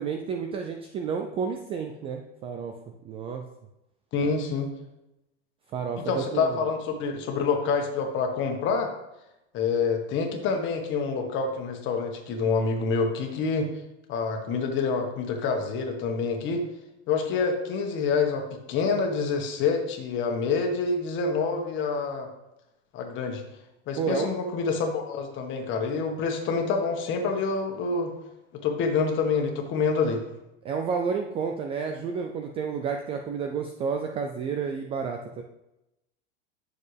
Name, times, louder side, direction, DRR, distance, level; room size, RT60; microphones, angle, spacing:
voice 1, 0.0-2.7 3.0-3.4 5.7-6.6 24.0-24.3 30.6-35.4, right 6 dB, 15° right, 4 dB, 0.3 m, -31 dB
voice 2, 4.1-4.7 6.0-8.9 9.5-13.7 14.1-16.6 17.1-22.3 22.9-23.4 23.9-28.1 28.5-30.2, left 4 dB, 35° left, 3 dB, 1.6 m, -27 dB
10.5 x 6.6 x 3.4 m, 0.91 s
supercardioid pair, 135°, 36 cm